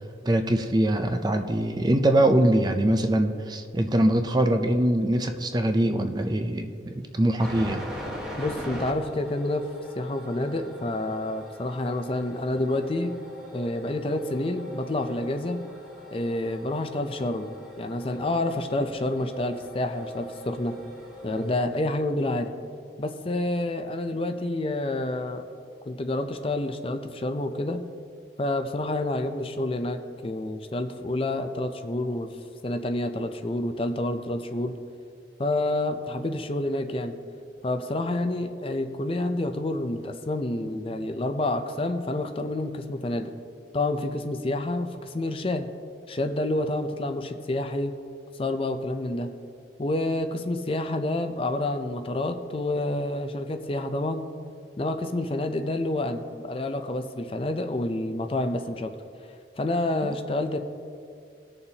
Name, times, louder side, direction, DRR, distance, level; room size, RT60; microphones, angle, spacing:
voice 1, 0.2-7.8 60.0-60.1, right 1 dB, 20° right, 6 dB, 0.5 m, -23 dB
sound 1, 7.4-21.6, equal, 5° right, 1.3 m, -41 dB
voice 2, 8.4-9.7 10.0-13.2 13.5-15.6 16.1-20.8 21.2-22.5 23.0-25.5 25.9-27.8 28.4-32.3 32.6-34.7 35.4-37.2 37.6-43.3 43.7-45.7 46.1-48.0 48.4-49.3 49.8-54.3 54.8-58.9 59.6-60.6, left 2 dB, 30° left, 7 dB, 0.5 m, -28 dB
19.0 x 6.8 x 2.9 m, 2.3 s
head